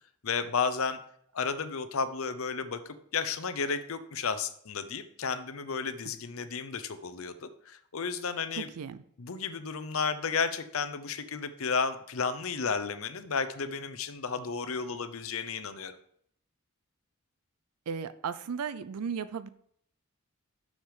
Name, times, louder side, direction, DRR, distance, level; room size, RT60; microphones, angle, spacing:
voice 1, 0.2-1.0 1.3-8.7 9.2-16.0, left 5 dB, 70° left, 12 dB, 0.7 m, -33 dB
voice 2, 8.6-9.0 17.9-19.5, right 6 dB, 90° right, 14 dB, 0.5 m, -35 dB
6.6 x 6.4 x 4.9 m, 0.66 s
head